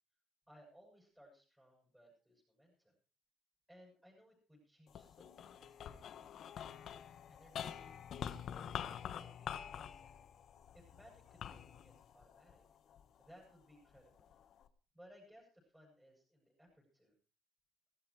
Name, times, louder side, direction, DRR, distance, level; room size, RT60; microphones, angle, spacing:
voice 1, 0.5-3.0 3.7-6.5 7.3-8.0 8.5-10.1 10.7-12.6 13.2-14.3 14.9-17.1, equal, 5° right, -4 dB, 8.0 m, -63 dB
sound 1, 4.9-13.3 13.9-14.7, left 9 dB, 55° left, 1.3 m, -47 dB
17.5 x 14.5 x 4.8 m, 0.37 s
cardioid pair, 135°, 0 cm